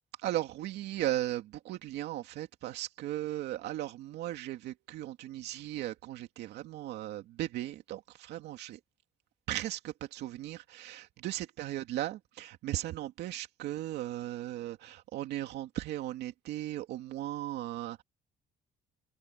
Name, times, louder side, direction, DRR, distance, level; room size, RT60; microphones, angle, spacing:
voice 1, 0.2-8.8 9.5-18.0, right 14 dB, 80° right, 2.6 m, -37 dB
cardioid pair, 110°, 17 cm